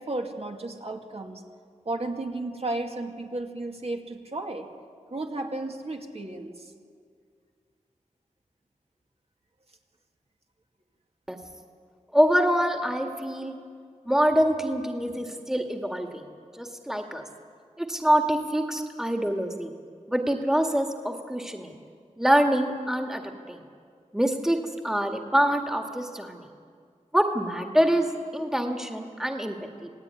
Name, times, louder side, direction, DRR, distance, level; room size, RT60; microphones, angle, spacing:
voice 1, 0.0-1.4 1.8-4.7 5.1-6.7, right 2 dB, 50° right, 3 dB, 2.4 m, -33 dB
voice 2, 12.1-13.6 14.1-16.2 16.5-17.2 17.8-19.7 20.1-21.7 22.2-23.2 23.5-23.6 24.1-26.4 27.1-29.9, equal, 5° right, 4 dB, 2.0 m, -25 dB
27.5 x 18.0 x 9.7 m, 2.2 s
wide cardioid pair, 85°, 13 cm